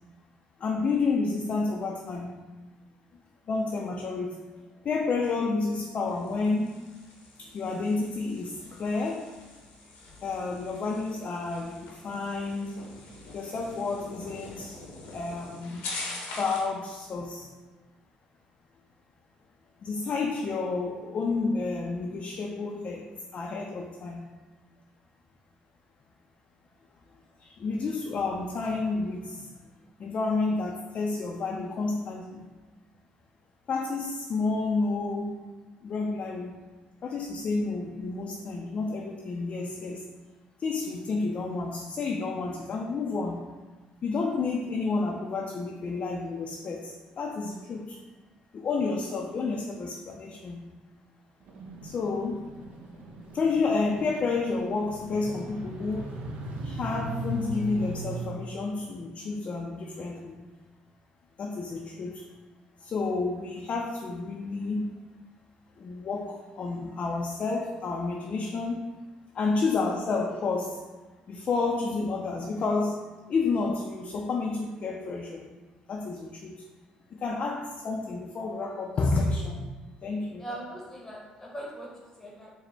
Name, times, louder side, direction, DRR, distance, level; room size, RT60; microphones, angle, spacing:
voice 1, 0.6-2.3 3.5-4.4 4.8-6.9 7.4-9.3 10.2-12.8 13.3-14.8 15.1-15.9 16.3-17.5 19.8-24.3 27.4-29.5 30.0-32.5 33.7-35.4 35.8-36.5 37.0-40.0 40.6-43.5 44.0-48.0 48.5-50.7 51.8-52.5 53.3-56.1 56.6-60.4 61.4-62.3 62.8-64.9 65.8-69.0 69.3-70.8 71.3-75.5 75.9-76.6 77.1-79.6 80.0-80.4, left 3 dB, 45° left, 0 dB, 0.4 m, -30 dB
sound 1, 6.1-16.8, left 3 dB, 85° left, 0.8 m, -44 dB
sound 2, 51.4-58.3, right 1 dB, 65° right, 0.6 m, -38 dB
voice 2, 80.4-82.5, right 1 dB, 15° left, -3 dB, 0.8 m, -41 dB
4.8 x 2.0 x 3.3 m, 1.3 s
supercardioid pair, 75°, 3 cm